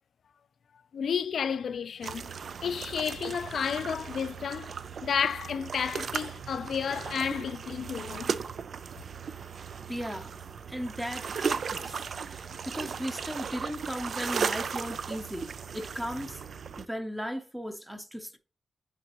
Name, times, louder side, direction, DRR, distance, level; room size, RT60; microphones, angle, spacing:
voice 1, 0.9-2.3 2.6-4.7 5.0-8.3, left 7 dB, 80° left, 0.4 m, -31 dB
sound 1, 2.0-16.9, right 6 dB, 65° right, 0.3 m, -36 dB
voice 2, 9.9-10.3 10.7-16.4 16.8-18.4, equal, 5° right, 0.7 m, -37 dB
8.6 x 3.8 x 2.9 m
wide cardioid pair, 150°, 0 cm